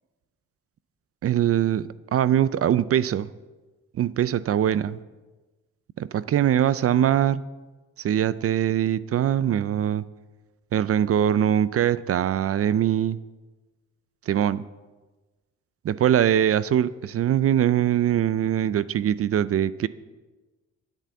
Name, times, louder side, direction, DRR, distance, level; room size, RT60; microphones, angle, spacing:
voice 1, 1.2-3.3 4.0-5.0 6.0-7.4 8.0-10.1 10.7-13.2 14.3-14.6 15.8-19.9, right 10 dB, 50° right, 17 dB, 0.5 m, -22 dB
10.0 x 9.1 x 8.1 m, 1.2 s
cardioid pair, 90°, 30 cm